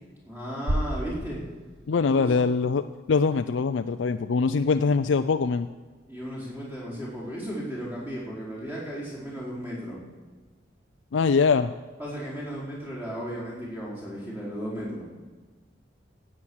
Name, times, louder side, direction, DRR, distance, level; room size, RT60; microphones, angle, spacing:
voice 1, 0.2-1.4 2.1-2.4 6.1-10.0 12.0-15.1, equal, 15° right, -6 dB, 4.7 m, -35 dB
sound 1, 0.7-2.7, equal, 55° right, 1.1 m, -32 dB
voice 2, 1.9-5.7 11.1-11.7, left 5 dB, 90° left, 8 dB, 0.4 m, -23 dB
15.5 x 8.7 x 6.4 m, 1.4 s
head